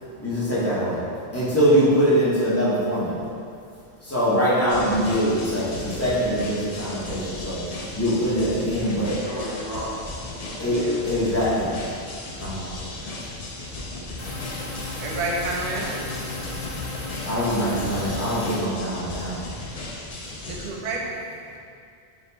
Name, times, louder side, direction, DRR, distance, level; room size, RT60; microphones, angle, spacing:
voice 1, 0.2-1.0 1.3-3.2 4.0-7.6 7.9-9.2 10.6-11.7 12.4-12.7 13.5-15.0 16.4-17.0 17.2-19.4, equal, 15° left, -9 dB, 0.8 m, -23 dB
sound 1, 4.7-20.7, left 2 dB, 60° left, 0.4 m, -36 dB
voice 2, 8.8-11.5 12.6-13.1, right 1 dB, 25° right, -11 dB, 1.3 m, -38 dB
sound 2, 14.2-18.6, left 3 dB, 75° left, 1.0 m, -35 dB
voice 3, 15.0-16.1 20.6-21.0, right 2 dB, 85° right, -1 dB, 0.9 m, -29 dB
4.3 x 2.4 x 3.3 m, 2.3 s
omnidirectional pair, 1.1 m